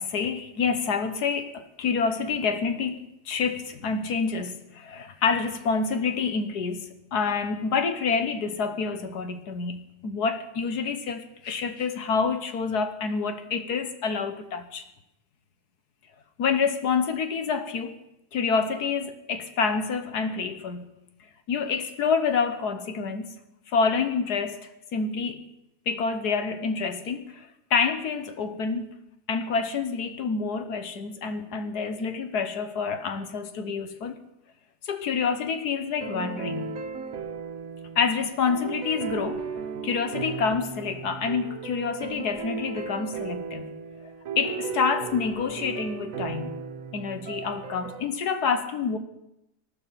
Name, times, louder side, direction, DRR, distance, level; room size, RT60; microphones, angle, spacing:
voice 1, 0.0-14.8 16.4-18.0 18.3-20.9 21.5-23.4 23.7-25.4 25.9-28.9 29.3-34.2 34.8-36.8 37.9-43.7 44.0-44.1 44.4-46.6 46.9-49.0, left 5 dB, 75° left, 1.7 m, -28 dB
sound 1, 36.0-48.0, right 5 dB, 60° right, 1.4 m, -36 dB
19.5 x 11.5 x 5.7 m
omnidirectional pair, 1.7 m